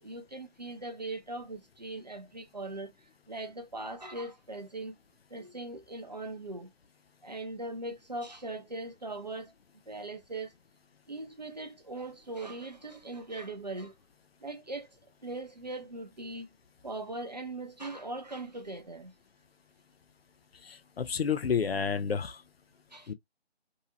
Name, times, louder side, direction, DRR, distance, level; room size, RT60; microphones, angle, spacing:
voice 1, 0.0-2.9 3.3-4.9 5.3-6.7 7.2-9.5 9.9-10.5 11.1-13.9 14.4-14.9 15.2-16.5 16.8-19.1 22.9-23.1, right 2 dB, 40° right, 0.4 m, -40 dB
voice 2, 20.6-22.4 23.1-23.2, left 6 dB, 65° left, 0.5 m, -30 dB
2.7 x 2.0 x 2.6 m
figure-of-eight pair, 160°, 33 cm